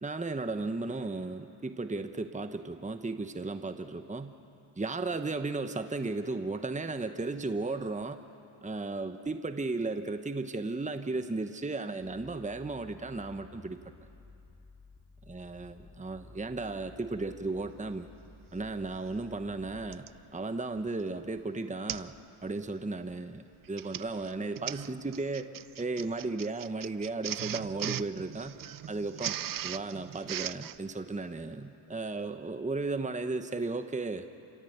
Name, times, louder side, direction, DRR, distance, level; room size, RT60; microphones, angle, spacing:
voice 1, 0.0-4.3 4.8-8.2 8.6-13.8 15.2-18.1 18.5-20.0 20.3-22.1 22.4-28.6 28.9-34.3, right 3 dB, 15° right, 8 dB, 1.1 m, -35 dB
sound 1, 12.0-20.0, left 3 dB, 35° left, 4.2 m, -54 dB
Printer, 18.7-18.8 19.9-20.2 20.8-21.0 21.3-21.4 21.9-22.2 22.5-22.8 23.5-30.8, right 11 dB, 45° right, 0.6 m, -39 dB
29.0 x 16.5 x 8.1 m, 2.6 s
cardioid pair, 60°, 49 cm